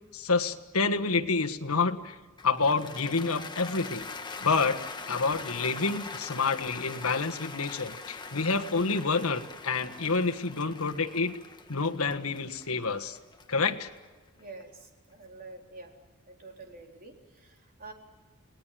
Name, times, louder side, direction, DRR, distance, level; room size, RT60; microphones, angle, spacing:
voice 1, 0.1-2.2 2.4-4.0 4.4-11.4 11.7-13.2 13.5-13.9, left 4 dB, 70° left, 6 dB, 1.5 m, -28 dB
Cheering / Applause, 2.4-14.6, left 4 dB, 20° left, 1.4 m, -42 dB
voice 2, 14.4-15.9 16.3-17.9, right 3 dB, 40° right, 2 dB, 3.9 m, -47 dB
29.5 x 20.0 x 7.7 m, 1.3 s
head